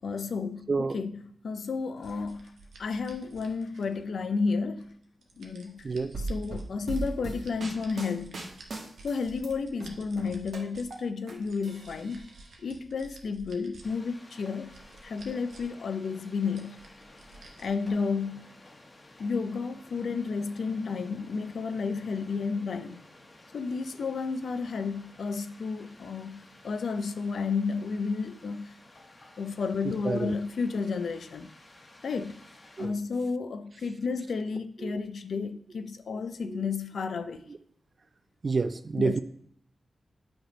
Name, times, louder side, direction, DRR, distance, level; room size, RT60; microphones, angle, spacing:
voice 1, 0.0-4.9 5.4-5.9 6.2-8.4 9.0-12.3 12.6-14.7 15.0-16.8 17.6-18.5 19.2-23.0 23.5-28.8 29.4-31.5 32.0-32.4 32.8-37.5 39.0-39.2, left 4 dB, 75° left, 0.5 m, -32 dB
sound 1, 2.0-4.1 4.8-6.7 7.0-11.0 11.3-13.8 14.3-15.8 16.0-16.1 16.6-17.9, right 3 dB, 85° right, 1.1 m, -52 dB
sound 2, 6.1-9.5 9.8-11.3 11.6-12.5, right 2 dB, 65° right, 1.4 m, -38 dB
sound 3, 13.8-32.9, left 2 dB, 40° left, 1.2 m, -53 dB
voice 2, 38.4-39.2, right 4 dB, 45° right, 0.3 m, -29 dB
7.9 x 3.4 x 5.0 m
wide cardioid pair, 85°, 0 cm